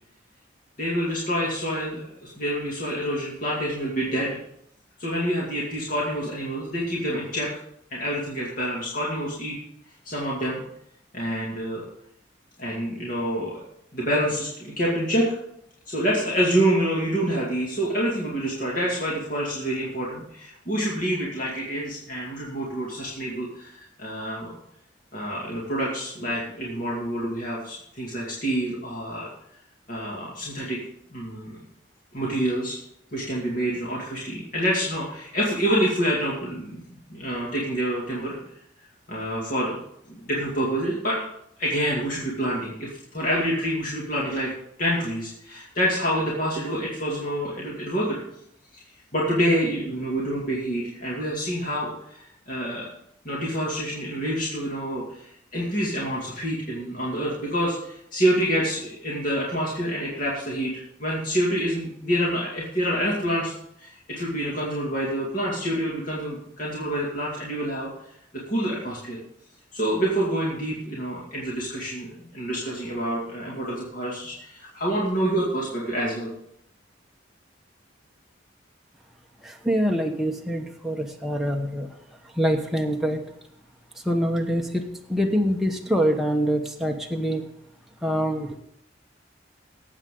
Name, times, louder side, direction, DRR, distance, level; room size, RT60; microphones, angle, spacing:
voice 1, 0.8-4.4 5.0-7.5 7.9-9.6 10.0-10.6 11.1-11.8 12.6-13.6 13.9-15.4 15.9-24.6 25.1-29.3 29.9-30.8 31.1-31.6 32.1-32.8 33.1-38.4 39.1-39.8 40.1-41.2 41.6-44.5 44.8-48.2 48.7-48.8 49.1-52.9 53.2-63.5 63.8-67.9 68.3-69.2 69.7-76.3, equal, 45° left, -5 dB, 2.5 m, -27 dB
voice 2, 79.4-81.9 82.4-83.2 84.0-84.8 85.1-87.4 88.0-88.6, equal, ahead, 0 dB, 1.0 m, -25 dB
19.0 x 8.1 x 3.8 m, 0.74 s
head